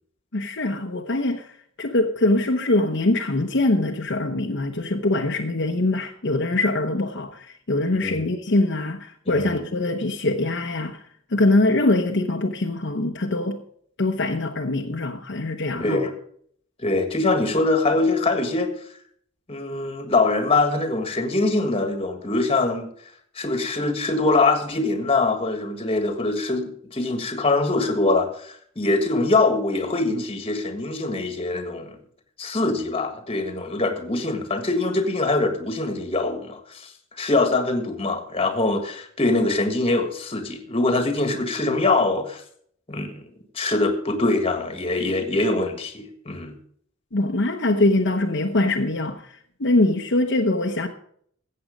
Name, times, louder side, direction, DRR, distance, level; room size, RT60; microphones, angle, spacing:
voice 1, 0.3-1.5 1.8-11.0 11.3-13.6 14.0-16.0 47.1-50.9, left 2 dB, 55° left, 0.9 m, -23 dB
voice 2, 9.3-9.6 15.8-16.1 16.8-18.7 19.5-22.8 23.4-31.9 32.4-36.9 37.2-42.4 42.9-43.1 43.5-46.5, left 2 dB, 30° left, 1.6 m, -23 dB
15.0 x 7.8 x 5.1 m
head